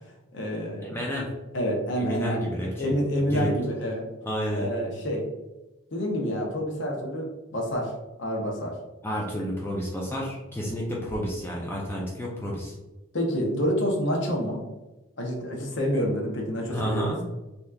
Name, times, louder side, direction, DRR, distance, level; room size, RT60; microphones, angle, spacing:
voice 1, 0.3-1.0 1.5-4.1 4.5-5.3 5.9-7.9 8.2-8.7 13.1-14.7 15.2-17.2, equal, 55° left, -1 dB, 0.7 m, -28 dB
voice 2, 0.9-1.3 2.0-2.9 3.3-3.5 4.3-4.7 9.0-12.7 16.7-17.2, equal, 10° left, -3 dB, 0.4 m, -30 dB
3.5 x 2.8 x 2.3 m, 1.0 s
head